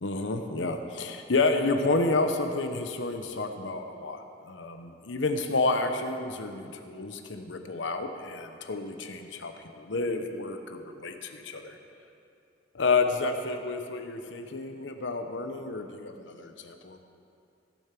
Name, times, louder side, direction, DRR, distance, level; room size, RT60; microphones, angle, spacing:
voice 1, 0.0-11.8 12.7-17.0, left 3 dB, 70° left, 6 dB, 0.9 m, -30 dB
16.5 x 7.2 x 6.0 m, 2.5 s
head